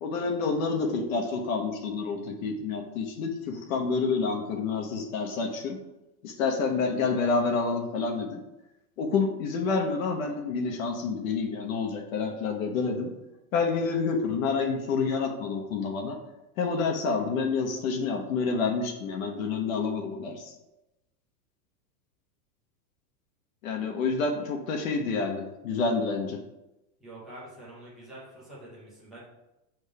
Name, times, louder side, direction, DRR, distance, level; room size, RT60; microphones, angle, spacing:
voice 1, 0.0-5.8 6.2-8.4 9.0-13.1 13.5-16.2 16.6-20.5 23.6-26.4, left 4 dB, 55° left, 3 dB, 1.0 m, -28 dB
voice 2, 27.0-29.2, right 1 dB, ahead, -10 dB, 0.4 m, -46 dB
6.8 x 3.6 x 5.0 m, 0.94 s
supercardioid pair, 175°, 49 cm